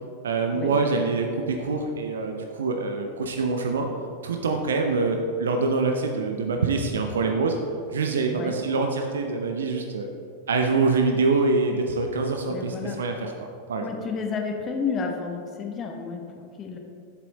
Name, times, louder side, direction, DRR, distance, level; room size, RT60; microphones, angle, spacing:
voice 1, 0.2-3.9 4.2-7.6 7.9-10.1 10.5-13.9, right 3 dB, 65° right, 3 dB, 0.6 m, -25 dB
voice 2, 12.5-13.0 13.8-16.8, left 5 dB, 25° left, 2 dB, 0.9 m, -31 dB
7.4 x 7.1 x 4.0 m, 2.3 s
figure-of-eight pair, 90°, 0 cm